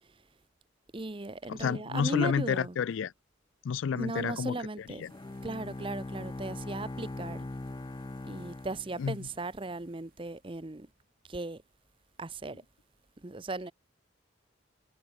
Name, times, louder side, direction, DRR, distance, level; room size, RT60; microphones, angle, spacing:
voice 1, 0.9-2.8 3.9-5.0 5.4-7.5 8.2-10.9 11.3-11.6 12.2-12.6 13.2-13.7, right 2 dB, 25° right, 0.7 m, -37 dB
voice 2, 1.5-3.1 3.6-4.6 5.0-5.1 9.0-9.2, left 6 dB, 80° left, 0.4 m, -30 dB
sound 1, 5.0-13.1, right 8 dB, 45° right, 6.1 m, -68 dB
Bowed string instrument, 5.1-9.5, left 2 dB, 20° left, 0.4 m, -41 dB
head